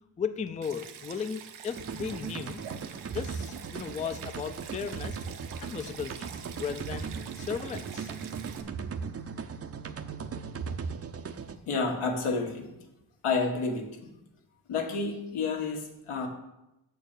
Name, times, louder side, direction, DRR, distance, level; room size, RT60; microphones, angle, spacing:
voice 1, 0.2-2.6 3.1-5.2 5.6-6.3 6.6-8.1, left 6 dB, 15° left, 10 dB, 0.4 m, -36 dB
Stream, 0.6-8.6, right 8 dB, 80° right, 0.9 m, -46 dB
sound 1, 1.7-11.5, right 5 dB, 30° right, 0.5 m, -38 dB
voice 2, 11.7-12.7 13.2-14.1 14.7-16.3, left 4 dB, 80° left, 2 dB, 1.5 m, -30 dB
6.7 x 4.7 x 6.6 m, 0.92 s
cardioid pair, 85°, 49 cm